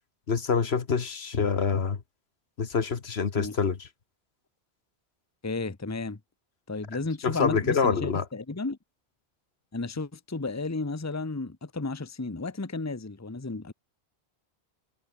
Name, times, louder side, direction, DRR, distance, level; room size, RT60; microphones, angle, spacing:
voice 1, 0.3-2.0 2.6-3.9 7.2-8.2, left 5 dB, 70° left, 1.7 m, -26 dB
voice 2, 5.4-6.2 6.7-8.8 9.7-13.7, left 3 dB, 15° left, 1.0 m, -33 dB
omnidirectional pair, 1.1 m